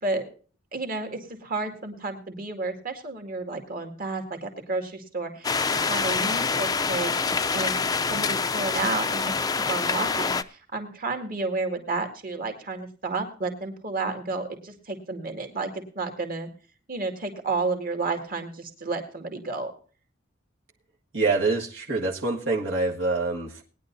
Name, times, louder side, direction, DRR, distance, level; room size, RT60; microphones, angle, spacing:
voice 1, 0.7-16.5 16.9-19.7, right 3 dB, 50° right, 4 dB, 2.2 m, -31 dB
sound 1, 5.4-10.4, left 4 dB, 20° left, 0.5 m, -26 dB
voice 2, 21.1-23.6, right 3 dB, 75° right, -3 dB, 1.7 m, -26 dB
20.0 x 10.5 x 2.7 m, 0.38 s
head